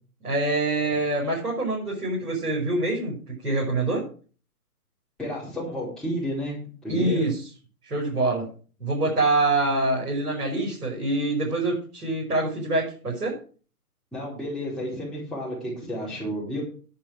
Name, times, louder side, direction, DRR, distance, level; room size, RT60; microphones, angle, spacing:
voice 1, 0.2-4.0 6.9-7.4 7.8-8.5 8.8-13.4, right 2 dB, 80° right, -3 dB, 5.9 m, -25 dB
voice 2, 5.2-7.2 14.1-16.6, equal, ahead, -9 dB, 4.9 m, -31 dB
10.0 x 9.8 x 5.0 m, 0.40 s
hypercardioid pair, 140°, 45 cm